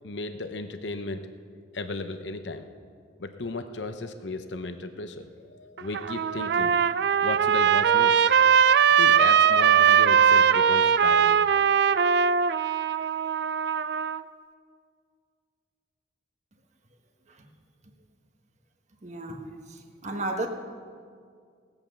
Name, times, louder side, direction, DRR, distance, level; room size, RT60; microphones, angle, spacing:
voice 1, 0.0-1.2 1.7-2.7 3.2-6.9 7.2-8.2 8.6-11.4 11.8-11.9, left 3 dB, 90° left, 8 dB, 0.8 m, -35 dB
Trumpet, 5.8-14.2, right 7 dB, 65° right, 0.4 m, -21 dB
voice 2, 19.0-19.4 19.7-20.5, right 2 dB, 40° right, 3 dB, 1.4 m, -33 dB
18.0 x 8.9 x 7.1 m, 2.1 s
head